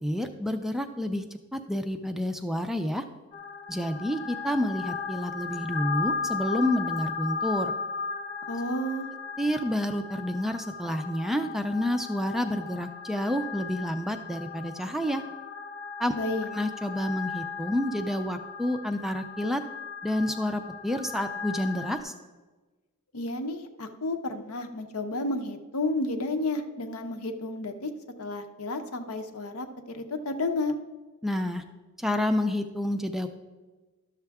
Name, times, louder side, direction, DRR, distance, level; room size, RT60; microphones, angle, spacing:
voice 1, 0.0-1.2 1.5-3.0 3.7-7.7 9.4-15.2 16.0-16.1 16.5-19.6 20.0-22.1 31.2-31.6 32.0-33.3, left 1 dB, ahead, 6 dB, 0.4 m, -29 dB
sound 1, 3.3-22.0, left 5 dB, 20° left, 0.7 m, -36 dB
voice 2, 8.5-9.1 16.1-16.5 23.1-27.9 28.2-30.7, left 2 dB, 70° left, 7 dB, 0.8 m, -31 dB
12.0 x 6.7 x 3.5 m, 1.2 s
head